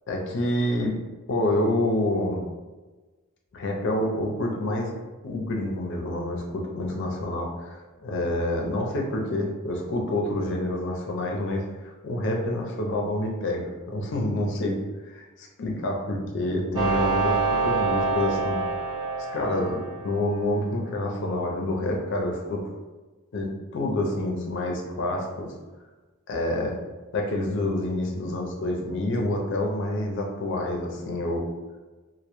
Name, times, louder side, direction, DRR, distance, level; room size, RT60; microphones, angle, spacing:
voice 1, 0.1-1.0 1.3-2.4 3.5-4.9 5.2-18.6 19.3-22.6 23.3-25.5 26.3-26.8 27.1-31.5, left 1 dB, 55° left, 1 dB, 0.4 m, -28 dB
sound 1, 16.8-20.5, right 3 dB, 20° right, 0.3 m, -26 dB
2.1 x 2.0 x 2.9 m, 1.2 s
head